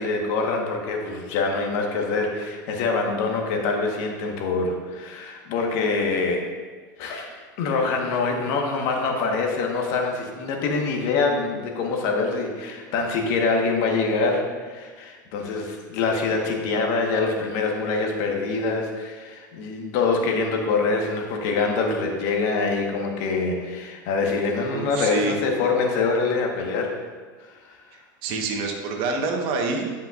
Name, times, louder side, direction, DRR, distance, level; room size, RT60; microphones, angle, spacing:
voice 1, 0.0-6.4 7.0-27.0 27.4-27.9, left 4 dB, 60° left, 1 dB, 1.4 m, -25 dB
voice 2, 24.7-25.4 27.9-29.9, right 3 dB, 55° right, 3 dB, 1.3 m, -27 dB
10.5 x 5.6 x 2.5 m, 1.5 s
hypercardioid pair, 95°, 10 cm